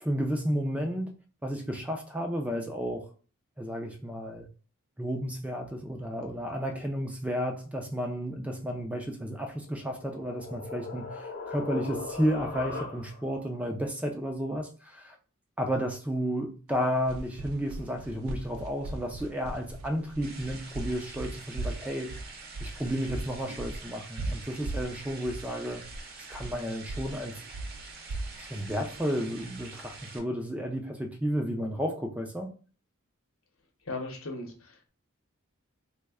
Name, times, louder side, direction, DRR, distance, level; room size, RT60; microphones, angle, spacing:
voice 1, 0.0-1.2 1.4-3.1 3.6-4.5 5.0-15.2 15.6-22.2 22.6-25.8 26.3-27.4 28.4-32.5, equal, 5° right, 0.3 m, -32 dB
sound 1, 9.6-13.4, left 4 dB, 45° left, 0.7 m, -39 dB
sound 2, 16.7-30.0, right 2 dB, 85° right, 0.4 m, -39 dB
sound 3, 20.2-30.2, right 4 dB, 45° right, 0.8 m, -47 dB
voice 2, 33.8-34.9, left 2 dB, 70° left, 0.8 m, -38 dB
3.2 x 2.1 x 3.5 m
head